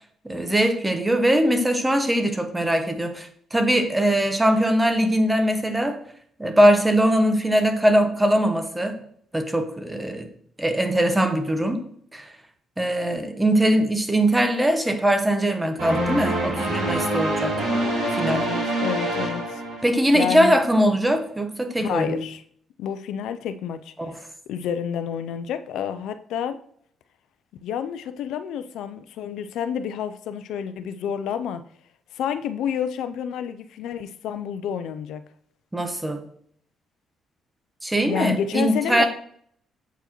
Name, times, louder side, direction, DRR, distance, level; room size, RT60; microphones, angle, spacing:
voice 1, 0.2-6.0 6.4-9.0 9.3-10.3 10.6-11.8 12.1-12.3 12.8-17.6 18.1-18.4 19.8-22.2 24.1-24.2 35.7-36.2 37.8-39.1, right 1 dB, 10° right, 7 dB, 0.9 m, -21 dB
sound 1, 15.8-20.3, right 1 dB, 85° right, 2.5 m, -26 dB
voice 2, 18.3-19.6 20.1-20.5 21.8-22.4 22.8-26.6 27.6-31.6 32.1-35.2 38.0-39.1, left 8 dB, 85° left, 10 dB, 0.3 m, -29 dB
7.9 x 4.6 x 2.9 m, 0.63 s
cardioid pair, 90°, 0 cm